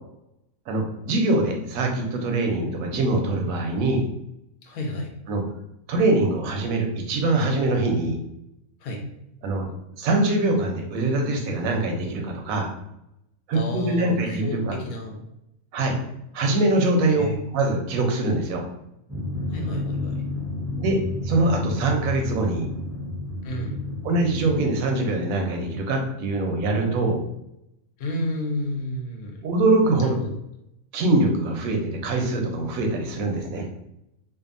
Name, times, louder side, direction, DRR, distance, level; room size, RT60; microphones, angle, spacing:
voice 1, 0.7-4.0 5.3-5.4 5.9-8.2 9.4-9.7 10.0-12.7 13.5-14.8 15.7-16.0 16.3-18.6 20.8-22.7 24.0-27.2 29.4-30.2 30.9-33.7, right 2 dB, 85° right, 2 dB, 1.0 m, -23 dB
voice 2, 4.6-5.1 8.8-9.0 13.5-15.2 17.1-17.4 19.5-20.1 23.4-23.8 28.0-29.4 30.0-30.4, left 1 dB, 85° left, 2 dB, 1.1 m, -31 dB
Drum, 19.1-25.6, left 2 dB, 20° right, 0.4 m, -31 dB
2.6 x 2.5 x 2.5 m, 0.82 s
omnidirectional pair, 1.4 m